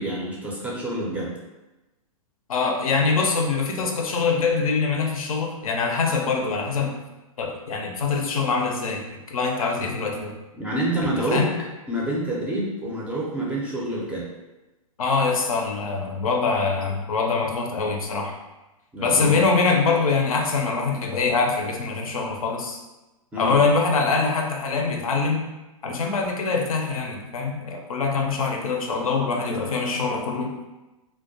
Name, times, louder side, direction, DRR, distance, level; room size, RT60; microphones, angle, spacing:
voice 1, 0.0-1.3 10.6-11.5 11.9-14.3 18.9-19.4 23.3-23.6, right 1 dB, 5° right, -5 dB, 0.4 m, -27 dB
voice 2, 2.5-7.0 7.4-10.3 11.3-11.5 15.0-18.3 19.0-22.8 23.4-25.4 25.8-30.6, left 4 dB, 70° left, 2 dB, 0.5 m, -24 dB
2.2 x 2.2 x 2.6 m, 1.0 s
hypercardioid pair, 115°, 18 cm